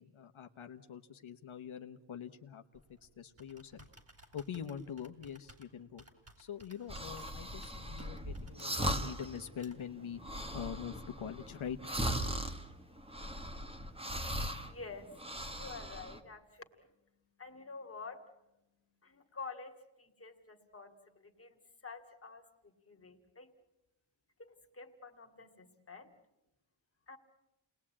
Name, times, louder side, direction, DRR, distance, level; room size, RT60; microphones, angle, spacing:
voice 1, 0.0-3.9 4.3-6.0 6.4-10.2 10.5-11.8, left 8 dB, 85° left, 6 dB, 1.2 m, -44 dB
Computer keyboard, 2.7-10.0, right 1 dB, 30° right, 3.2 m, -60 dB
sound 1, 6.9-9.4 9.7-9.8 10.1-14.7 15.1-16.2, equal, 10° right, 1.5 m, -39 dB
voice 2, 14.6-16.9 17.4-18.2 19.0-23.5 24.4-26.1 27.1-27.2, left 4 dB, 30° left, 4 dB, 2.3 m, -49 dB
30.0 x 20.5 x 8.7 m, 1.0 s
wide cardioid pair, 175°, 48 cm